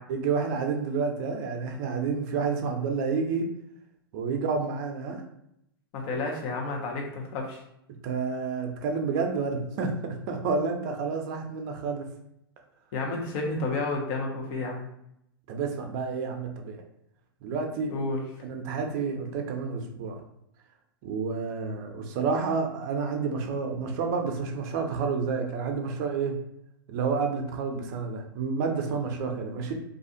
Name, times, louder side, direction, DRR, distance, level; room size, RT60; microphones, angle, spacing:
voice 1, 0.1-3.5 4.1-5.2 8.0-12.1 15.5-16.8 17.4-17.9 18.4-20.2 21.0-26.4 26.9-29.7, right 5 dB, 50° right, 3 dB, 0.6 m, -29 dB
voice 2, 5.9-7.6 12.9-14.9 17.9-18.2, left 3 dB, 45° left, 0 dB, 0.8 m, -31 dB
2.5 x 2.3 x 2.7 m, 0.77 s
hypercardioid pair, 110°, 12 cm